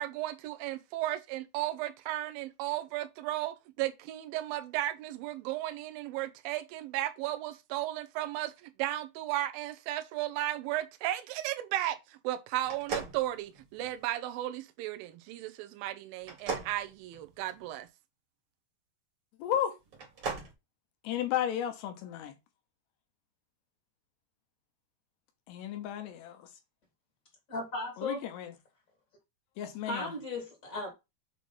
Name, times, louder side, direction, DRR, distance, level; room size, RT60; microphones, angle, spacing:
voice 1, 0.0-12.0 12.2-17.9, right 15 dB, 85° right, 2.1 m, -35 dB
sound 1, 12.6-14.0 16.2-17.8 19.9-20.5, right 5 dB, 45° right, 2.1 m, -38 dB
voice 2, 19.4-19.8 21.0-22.4 25.5-26.5 28.0-28.5 29.6-30.1, left 10 dB, 80° left, 2.9 m, -33 dB
voice 3, 27.5-28.3 29.9-30.9, left 2 dB, 25° left, 2.0 m, -36 dB
7.5 x 3.0 x 5.4 m
omnidirectional pair, 5.1 m